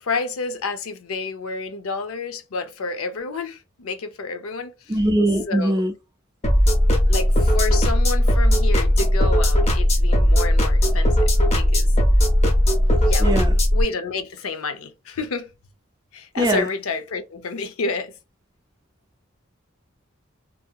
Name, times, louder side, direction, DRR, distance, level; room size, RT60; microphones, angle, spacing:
voice 1, 0.0-5.0 5.5-5.8 7.1-11.9 13.0-13.4 13.7-15.5 16.1-18.1, left 4 dB, 85° left, 0.5 m, -30 dB
voice 2, 4.9-5.9 13.2-13.5 16.4-16.7, right 1 dB, 20° right, 0.3 m, -21 dB
sound 1, 6.4-13.8, equal, 30° left, 0.6 m, -17 dB
2.7 x 2.6 x 2.3 m
head